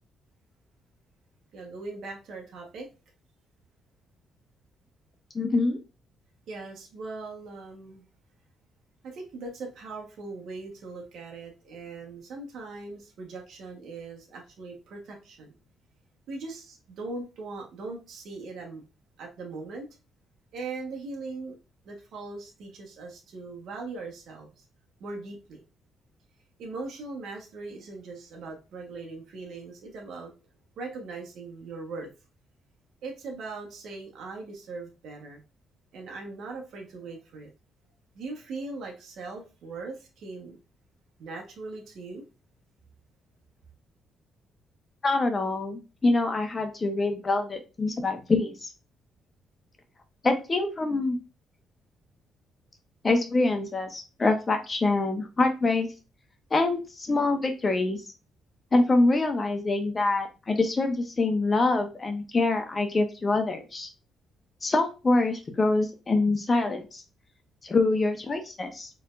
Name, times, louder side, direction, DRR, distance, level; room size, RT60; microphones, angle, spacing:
voice 1, 1.5-2.9 6.5-8.0 9.1-15.5 16.3-18.8 19.2-19.9 20.5-21.6 21.8-24.5 25.0-25.6 26.6-30.3 30.8-32.1 33.0-35.4 35.9-37.5 38.1-40.5 41.2-42.2, right 3 dB, 70° right, 1.3 m, -40 dB
voice 2, 5.3-5.8 45.0-48.7 50.2-51.2 53.0-55.9 56.5-58.0 58.7-63.9 64.6-67.0 67.6-68.9, left 2 dB, 30° left, 1.0 m, -25 dB
4.3 x 3.4 x 2.5 m
cardioid pair, 90°, 0 cm